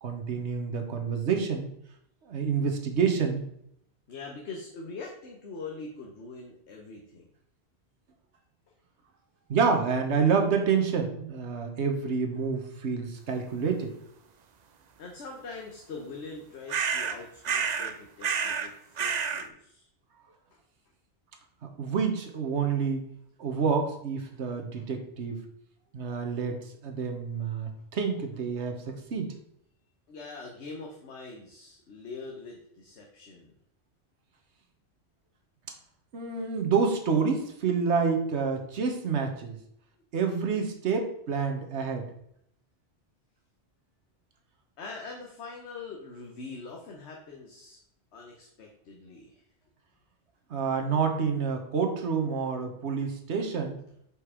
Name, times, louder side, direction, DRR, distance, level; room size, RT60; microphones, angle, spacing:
voice 1, 0.0-1.7 2.3-3.4 9.5-14.0 21.6-23.1 23.4-25.4 25.9-29.4 36.1-39.6 40.1-42.1 50.5-53.8, right 5 dB, 85° right, 4 dB, 1.3 m, -28 dB
voice 2, 4.1-7.2 15.0-18.7 19.0-19.9 20.5-20.6 26.3-26.4 30.1-33.5 44.8-47.8 48.1-49.4, left 3 dB, 80° left, 0 dB, 1.2 m, -43 dB
sound 1, 16.7-17.2 17.4-17.9 18.2-18.7 19.0-19.5, right 6 dB, 50° right, 0.5 m, -29 dB
5.2 x 4.8 x 4.8 m, 0.72 s
omnidirectional pair, 1.1 m